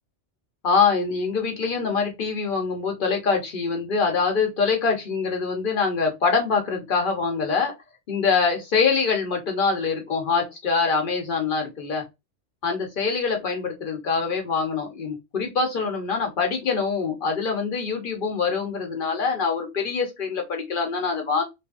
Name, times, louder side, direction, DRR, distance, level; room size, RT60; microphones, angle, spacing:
voice 1, 0.6-7.7 8.1-12.0 12.6-21.4, left 5 dB, 50° left, 1.0 m, -24 dB
2.7 x 2.6 x 2.3 m
omnidirectional pair, 1.2 m